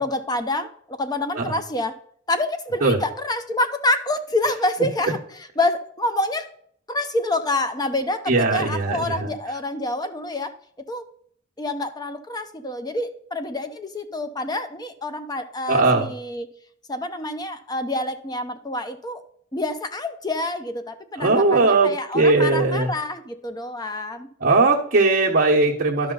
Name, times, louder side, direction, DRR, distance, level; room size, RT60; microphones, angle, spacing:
voice 1, 0.0-2.0 2.3-5.2 5.6-6.5 6.9-10.5 10.9-11.1 11.6-16.5 16.9-19.2 19.5-24.3, left 2 dB, 20° left, 9 dB, 0.6 m, -27 dB
voice 2, 8.3-9.3 15.7-16.1 21.2-22.9 24.4-26.1, right 3 dB, 45° right, -6 dB, 1.0 m, -19 dB
11.5 x 5.6 x 3.9 m, 0.62 s
head